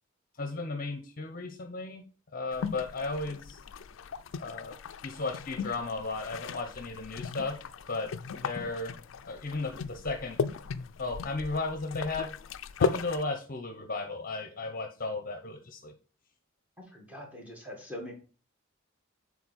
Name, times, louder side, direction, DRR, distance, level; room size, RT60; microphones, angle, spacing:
voice 1, 0.4-2.0 2.3-3.6 4.4-4.8 5.0-7.6 7.9-8.9 9.3-10.4 11.0-12.3 12.8-15.9, left 3 dB, 45° left, 6 dB, 0.8 m, -35 dB
sound 1, 2.5-13.2, left 5 dB, 70° left, 0.4 m, -37 dB
voice 2, 16.9-18.1, left 1 dB, 5° right, 0 dB, 1.9 m, -42 dB
7.2 x 4.2 x 4.2 m, 0.36 s
head